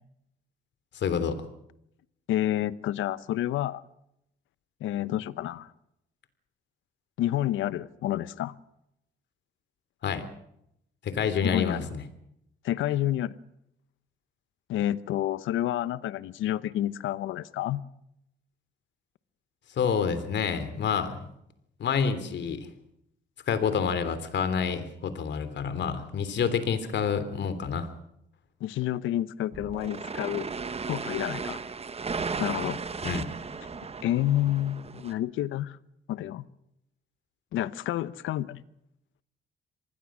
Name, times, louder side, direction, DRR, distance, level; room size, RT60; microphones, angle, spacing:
voice 1, 0.9-1.4 10.0-10.3 11.0-12.0 19.8-21.3 21.8-22.7 23.5-27.9 33.0-33.3, left 6 dB, 65° left, 3.3 m, -28 dB
voice 2, 2.3-3.8 4.8-5.7 7.2-8.5 11.4-11.9 12.6-13.4 14.7-17.8 28.6-30.5 30.9-31.6 32.4-32.8 34.0-35.8 36.1-36.5 37.5-38.6, left 13 dB, 85° left, 1.0 m, -29 dB
sound 1, 29.5-35.1, right 5 dB, 30° right, 1.3 m, -35 dB
26.0 x 19.5 x 6.3 m
cardioid pair, 90°, 20 cm